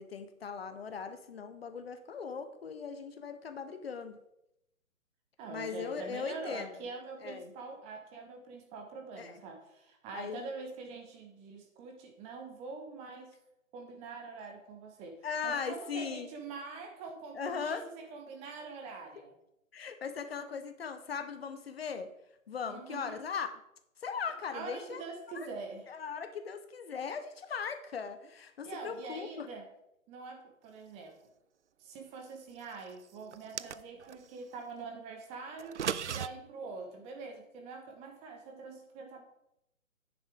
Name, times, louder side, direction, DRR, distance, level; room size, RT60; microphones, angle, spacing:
voice 1, 0.0-4.2 5.5-6.7 7.2-7.5 9.2-9.4 10.1-10.5 15.2-16.3 17.3-17.9 19.7-22.1 22.5-23.5 24.0-25.1 25.3-25.5 25.9-29.5, left 6 dB, 45° left, 9 dB, 1.1 m, -39 dB
voice 2, 5.4-13.4 13.7-19.4 22.7-23.2 24.5-25.9 28.6-29.6 30.1-31.1 31.8-35.9 36.1-39.2, right 4 dB, 15° right, 3 dB, 1.4 m, -44 dB
sound 1, 33.3-34.2 35.6-36.3, right 8 dB, 60° right, 0.6 m, -36 dB
11.0 x 9.9 x 3.7 m, 0.83 s
figure-of-eight pair, 140°, 41 cm